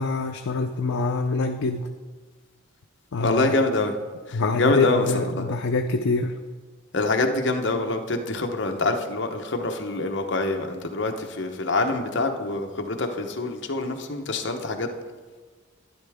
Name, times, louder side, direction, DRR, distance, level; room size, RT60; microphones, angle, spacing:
voice 1, 0.0-1.9 3.1-3.5 4.3-6.3, left 3 dB, 85° left, 4 dB, 0.5 m, -25 dB
voice 2, 3.2-4.0 4.3-5.4 6.9-14.9, left 2 dB, 55° left, 3 dB, 0.9 m, -25 dB
12.0 x 10.5 x 3.5 m, 1.4 s
head